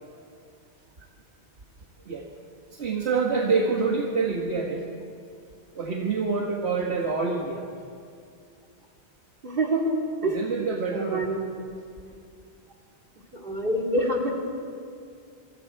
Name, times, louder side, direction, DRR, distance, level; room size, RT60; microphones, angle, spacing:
voice 1, 2.7-4.8 5.8-7.7 10.2-11.3, right 4 dB, 85° right, 0 dB, 1.8 m, -26 dB
voice 2, 9.4-10.4 10.9-11.4 13.3-14.3, right 1 dB, 55° right, -1 dB, 3.3 m, -26 dB
26.5 x 23.5 x 4.7 m, 2.4 s
omnidirectional pair, 1.1 m